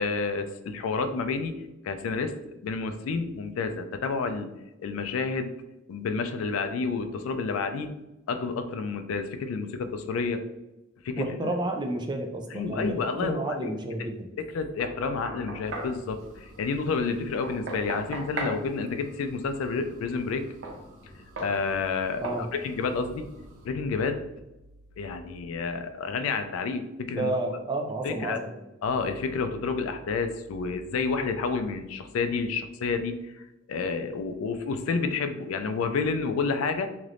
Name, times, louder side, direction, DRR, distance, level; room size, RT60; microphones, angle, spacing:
voice 1, 0.0-1.6 1.8-2.3 2.6-4.5 4.8-5.5 5.9-7.9 8.3-10.4 11.0-11.5 12.5-13.7 14.4-20.4 21.4-22.3 22.6-23.3 23.6-24.2 25.0-27.3 28.0-28.4 28.8-33.3 33.7-36.9, left 4 dB, 80° left, 8 dB, 0.3 m, -29 dB
voice 2, 11.2-14.3 22.2-22.5 27.1-28.6, right 2 dB, 20° right, 3 dB, 0.4 m, -31 dB
Knock, 14.8-16.0 17.4-18.6 20.6-20.8 21.4-21.6 22.2-22.5, right 2 dB, 65° right, 0.7 m, -35 dB
sound 1, 15.6-23.7, equal, 85° right, 1.1 m, -52 dB
3.2 x 2.9 x 2.5 m, 0.95 s
head